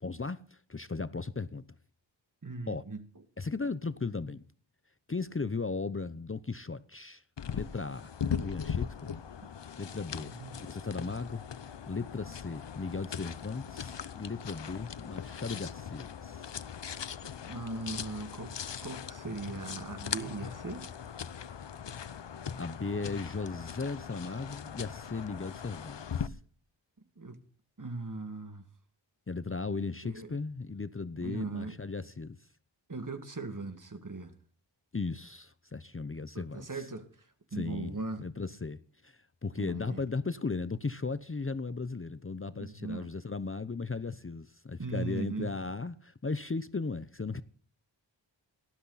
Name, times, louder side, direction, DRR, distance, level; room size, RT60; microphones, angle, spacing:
voice 1, 0.0-1.6 2.7-2.8 3.4-4.4 5.1-7.2 7.5-9.1 9.8-11.5 11.9-16.5 22.6-26.4 29.3-32.4 34.9-36.7 37.5-47.4, left 4 dB, 25° left, 0.8 m, -36 dB
voice 2, 2.4-3.2 9.4-9.5 10.2-10.7 17.5-18.6 18.8-20.9 27.2-27.4 27.8-28.6 30.0-30.4 31.2-31.8 32.9-34.3 36.3-38.3 39.6-40.0 42.6-43.1 44.8-45.5, right 3 dB, 40° right, 2.3 m, -39 dB
sound 1, 7.4-26.3, left 7 dB, 65° left, 0.9 m, -40 dB
18.5 x 13.0 x 4.1 m
wide cardioid pair, 80°, 47 cm